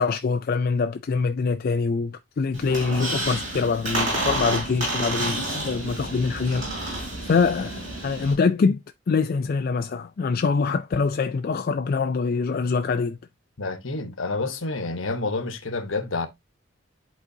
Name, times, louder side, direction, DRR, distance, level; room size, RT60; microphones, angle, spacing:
voice 1, 0.0-8.8 9.1-13.2, left 4 dB, 45° left, 0.3 m, -24 dB
Squeak, 2.5-8.3, right 2 dB, 40° right, 5.0 m, -29 dB
voice 2, 13.6-16.3, left 3 dB, 70° left, 1.1 m, -28 dB
10.5 x 4.0 x 2.7 m
head